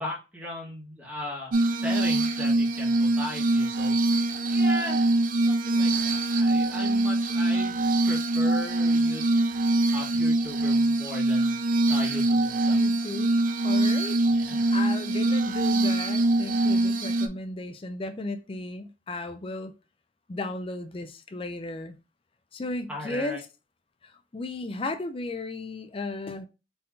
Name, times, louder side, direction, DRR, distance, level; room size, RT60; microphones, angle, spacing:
voice 1, 0.0-7.8 8.1-9.2 9.6-11.6 11.9-12.8 14.3-14.8 22.9-23.4, left 1 dB, 10° right, 1.6 m, -38 dB
Glass, 1.5-17.3, right 2 dB, 45° right, 0.4 m, -24 dB
voice 2, 12.7-13.4 13.6-14.2 14.5-19.7 20.3-22.0 22.5-23.4 24.3-26.5, left 2 dB, 30° left, 0.4 m, -35 dB
4.3 x 3.7 x 2.7 m
head